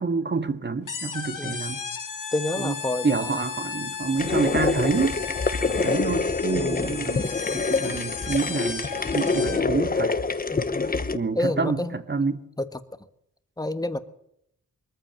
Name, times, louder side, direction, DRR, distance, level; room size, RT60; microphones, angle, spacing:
voice 1, 0.0-1.8 2.6-2.8 3.0-5.2 5.8-8.9 9.1-10.2 11.1-12.4, right 4 dB, 35° right, 1.8 m, -27 dB
sound 1, 0.9-9.8, left 6 dB, 70° left, 3.1 m, -35 dB
voice 2, 2.3-3.4 6.5-7.2 10.5-10.8 11.3-12.0 12.6-12.7 13.6-14.0, left 1 dB, 10° left, 1.5 m, -29 dB
sound 2, 4.2-11.2, left 4 dB, 25° left, 1.2 m, -26 dB
23.5 x 14.5 x 9.0 m
wide cardioid pair, 175°, 32 cm